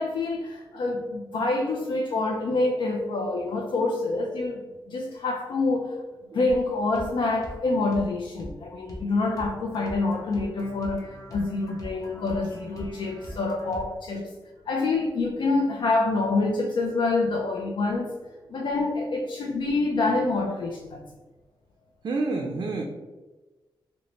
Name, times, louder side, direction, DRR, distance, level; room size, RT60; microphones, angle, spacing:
voice 1, 0.0-6.0 6.3-14.3 14.7-18.2 18.5-21.0, left 3 dB, 70° left, 1 dB, 0.4 m, -26 dB
sound 1, 6.5-6.6 6.9-7.1 7.4-7.6 7.9-8.1 8.4-8.6 8.9-9.1 9.4-14.0, equal, 45° left, 0.7 m, -41 dB
voice 2, 22.0-22.8, right 3 dB, 50° right, 0 dB, 0.4 m, -29 dB
3.1 x 2.1 x 3.8 m, 1.2 s
wide cardioid pair, 170°, 9 cm